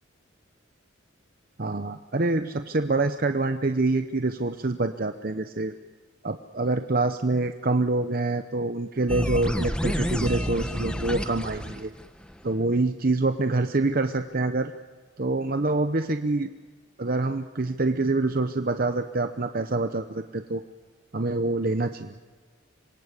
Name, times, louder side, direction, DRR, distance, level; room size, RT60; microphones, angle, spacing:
voice 1, 1.6-5.7 6.2-11.9 12.4-14.7 15.2-16.5 17.0-20.6 21.1-22.2, right 2 dB, 45° right, 8 dB, 0.8 m, -26 dB
sound 1, 9.1-12.4, equal, 5° left, 1.2 m, -29 dB
26.5 x 22.0 x 8.3 m, 1.5 s
head